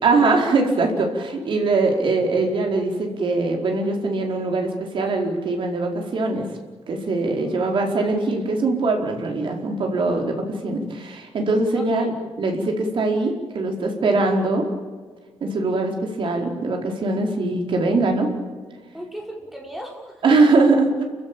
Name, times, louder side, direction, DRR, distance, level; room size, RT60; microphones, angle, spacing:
voice 1, 0.0-6.5 6.9-10.3 10.6-12.1 12.4-14.7 15.4-18.3 20.2-21.0, right 3 dB, 50° right, 2 dB, 4.6 m, -21 dB
voice 2, 7.4-7.7 11.7-12.1 18.9-20.4, equal, ahead, 1 dB, 4.9 m, -37 dB
29.0 x 16.0 x 9.0 m, 1.5 s
wide cardioid pair, 165°, 11 cm